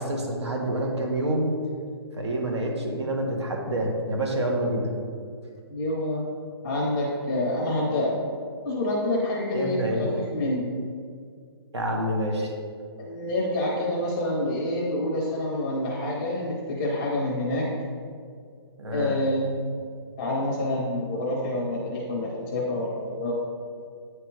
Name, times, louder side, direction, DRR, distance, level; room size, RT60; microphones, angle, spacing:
voice 1, 0.0-1.5 2.1-4.9 9.5-10.2 11.7-12.5 18.8-19.2, right 1 dB, 85° right, 0 dB, 1.5 m, -27 dB
voice 2, 5.7-6.2 6.6-8.2 8.6-10.7 13.0-17.7 18.9-19.5 20.2-23.3, left 1 dB, 10° left, -3 dB, 0.5 m, -27 dB
8.6 x 3.5 x 4.6 m, 2.1 s
hypercardioid pair, 180°, 14 cm